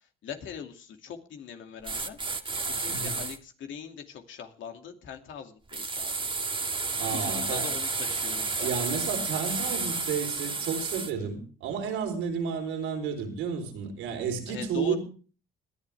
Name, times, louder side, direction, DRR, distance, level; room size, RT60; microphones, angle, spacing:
voice 1, 0.2-2.2 2.6-6.1 7.1-8.7 14.5-15.0, left 7 dB, 70° left, 4 dB, 2.5 m, -41 dB
sound 1, 1.8-3.4 5.7-11.1, right 3 dB, 25° right, 1.6 m, -31 dB
voice 2, 7.0-7.7 8.6-15.0, right 6 dB, 85° right, 4 dB, 3.9 m, -32 dB
20.5 x 11.0 x 3.5 m, 0.39 s
supercardioid pair, 75°, 21 cm